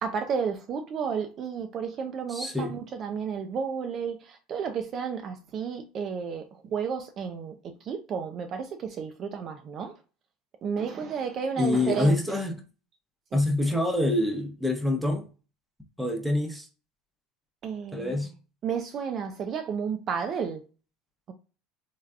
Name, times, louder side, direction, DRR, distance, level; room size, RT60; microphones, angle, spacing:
voice 1, 0.0-9.9 10.6-12.2 13.3-13.4 17.6-18.2 18.6-20.6, right 6 dB, 45° right, 0.4 m, -32 dB
voice 2, 2.3-2.8 11.6-12.6 13.3-15.2 16.0-16.7 17.9-18.3, left 2 dB, 5° right, 0.8 m, -26 dB
3.2 x 2.2 x 2.4 m
hypercardioid pair, 80°, 0 cm